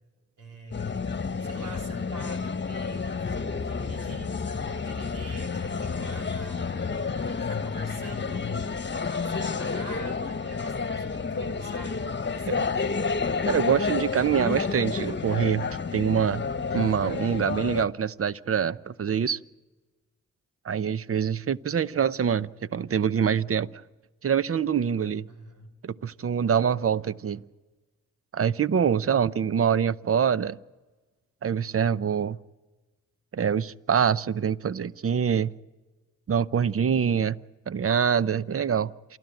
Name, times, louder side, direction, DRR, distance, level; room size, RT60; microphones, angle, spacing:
voice 1, 0.4-7.2 7.5-8.8 9.2-12.7 25.3-25.7, right 1 dB, 80° right, 3.4 m, -45 dB
sound 1, 0.7-17.9, left 5 dB, 35° left, 1.2 m, -30 dB
voice 2, 13.4-16.4 16.7-19.4 20.6-23.7 24.2-25.3 25.8-27.4 28.3-30.6 31.4-32.4 33.3-35.5 36.3-37.4 37.7-38.9, right 7 dB, 45° right, 0.7 m, -25 dB
28.5 x 12.5 x 9.0 m
supercardioid pair, 45°, 31 cm